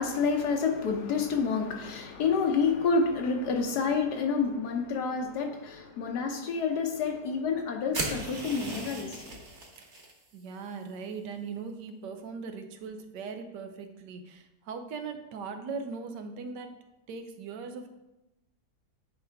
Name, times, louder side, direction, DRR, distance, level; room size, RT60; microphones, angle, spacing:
voice 1, 0.0-9.2, left 5 dB, 75° left, 1.4 m, -28 dB
sound 1, 7.9-10.1, right 2 dB, 45° right, 1.6 m, -36 dB
voice 2, 10.3-16.7 17.1-17.9, right 5 dB, 90° right, 1.4 m, -39 dB
10.0 x 4.8 x 3.5 m
omnidirectional pair, 1.8 m